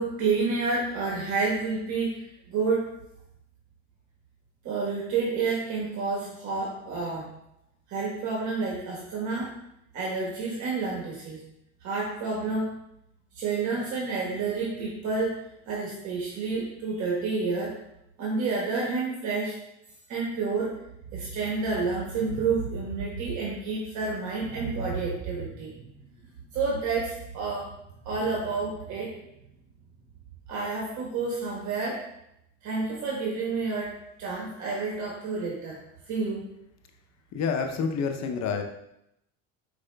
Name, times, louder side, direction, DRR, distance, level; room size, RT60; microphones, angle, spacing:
voice 1, 0.0-2.8 4.6-7.2 7.9-9.5 9.9-11.4 11.8-12.7 13.4-15.4 15.7-17.7 18.2-19.5 20.1-20.7 21.1-25.7 26.5-27.7 28.0-29.2 30.5-32.0 32.6-35.8 36.1-36.4, right 4 dB, 55° right, -3 dB, 1.2 m, -29 dB
voice 2, 37.3-38.6, left 5 dB, 50° left, 5 dB, 0.7 m, -28 dB
4.8 x 4.8 x 2.2 m, 0.81 s
supercardioid pair, 105°, 36 cm